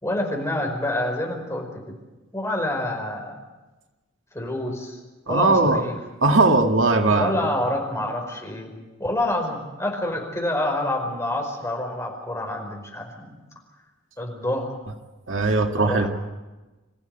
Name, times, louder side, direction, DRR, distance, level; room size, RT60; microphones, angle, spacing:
voice 1, 0.0-2.0 2.3-3.3 4.3-5.0 5.3-6.0 7.2-8.7 9.0-13.3 14.2-14.7 15.8-16.1, left 1 dB, 15° left, 1 dB, 5.0 m, -27 dB
voice 2, 5.3-5.8 6.2-7.4 15.3-16.1, right 3 dB, 70° right, 3 dB, 2.1 m, -19 dB
27.0 x 15.5 x 9.0 m, 1.2 s
head